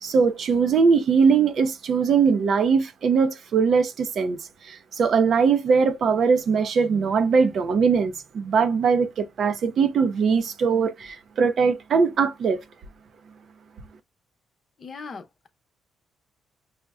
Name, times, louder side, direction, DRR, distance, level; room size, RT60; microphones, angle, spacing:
voice 1, 0.0-4.4 4.7-12.6, right 5 dB, 60° right, 0.5 m, -21 dB
voice 2, 14.8-15.5, left 4 dB, 45° left, 0.7 m, -39 dB
5.5 x 2.1 x 2.3 m
cardioid pair, 90°, 0 cm